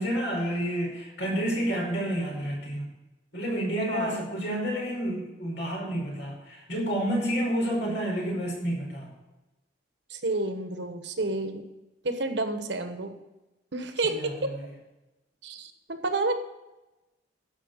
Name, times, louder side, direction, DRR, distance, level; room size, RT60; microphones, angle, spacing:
voice 1, 0.0-2.9 3.3-9.1 14.0-14.7, equal, 75° left, -2 dB, 5.1 m, -30 dB
voice 2, 3.9-4.2 10.1-11.6 12.0-13.1 13.7-14.2 15.4-16.3, right 2 dB, 65° right, 7 dB, 1.2 m, -30 dB
12.5 x 5.5 x 8.1 m, 1.0 s
head